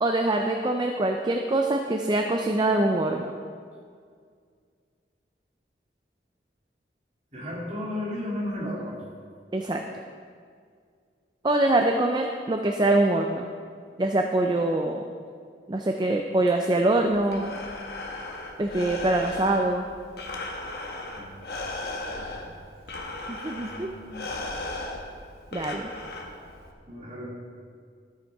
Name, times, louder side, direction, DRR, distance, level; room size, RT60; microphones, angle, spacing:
voice 1, 0.0-3.3 9.5-9.8 11.4-13.5 14.0-15.0 15.7-17.5 18.6-19.9 23.3-23.9 25.5-25.9, right 2 dB, 25° right, 3 dB, 0.4 m, -24 dB
voice 2, 7.3-9.0 21.1-21.3 22.1-22.7 23.5-24.4 26.9-27.2, left 1 dB, 40° right, -5 dB, 2.7 m, -35 dB
Breathing, 17.1-26.7, left 2 dB, 60° left, 1.1 m, -36 dB
12.5 x 9.3 x 3.5 m, 2.1 s
head